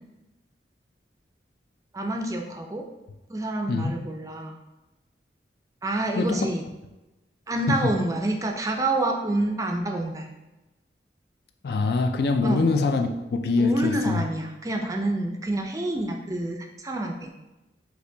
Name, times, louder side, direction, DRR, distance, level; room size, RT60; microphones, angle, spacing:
voice 1, 1.9-2.9 3.3-4.6 5.8-6.6 7.5-10.3 12.4-12.7 13.6-17.3, right 1 dB, 20° right, 2 dB, 0.4 m, -28 dB
voice 2, 11.6-14.2, left 3 dB, 60° left, 5 dB, 0.4 m, -23 dB
6.3 x 2.9 x 2.7 m, 1.0 s
head